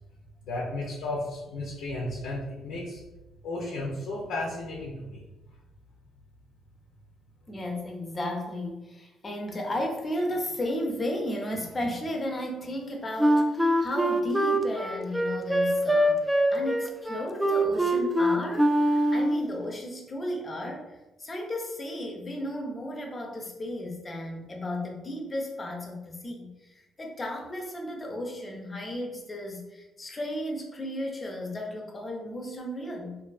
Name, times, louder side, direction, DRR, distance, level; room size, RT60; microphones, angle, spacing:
voice 1, 0.4-3.0 3.4-5.2, left 2 dB, 75° left, -4 dB, 0.5 m, -34 dB
voice 2, 7.5-18.7 19.1-33.2, left 1 dB, 35° left, 1 dB, 0.6 m, -34 dB
Wind instrument woodwind instrument, 13.2-19.5, right 1 dB, 5° right, 0.3 m, -23 dB
2.6 x 2.4 x 2.3 m, 1.0 s
hypercardioid pair, 55°, 0 cm